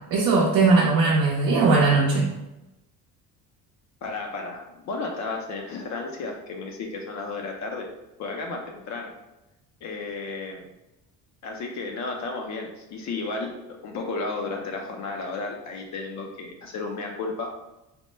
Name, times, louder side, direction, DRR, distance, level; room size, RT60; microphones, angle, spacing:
voice 1, 0.1-2.3, right 3 dB, 65° right, -3 dB, 0.6 m, -19 dB
voice 2, 4.0-7.9 8.2-9.1 9.8-10.6 11.4-13.5 13.8-17.5, left 3 dB, 50° left, 2 dB, 0.5 m, -33 dB
4.3 x 2.1 x 3.2 m, 0.96 s
cardioid pair, 160°, 37 cm